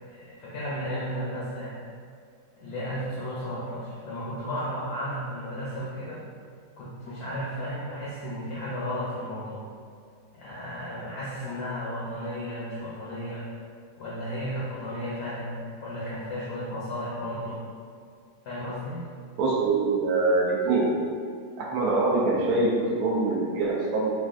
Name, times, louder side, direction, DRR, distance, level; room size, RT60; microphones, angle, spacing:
voice 1, 0.1-1.8 2.6-6.2 6.8-9.6 10.3-13.5 14.0-17.6 18.4-19.1, equal, 75° left, -8 dB, 0.9 m, -34 dB
voice 2, 19.4-20.9 21.6-24.1, right 3 dB, 70° right, -3 dB, 0.9 m, -24 dB
3.3 x 2.2 x 2.3 m, 2.2 s
omnidirectional pair, 2.0 m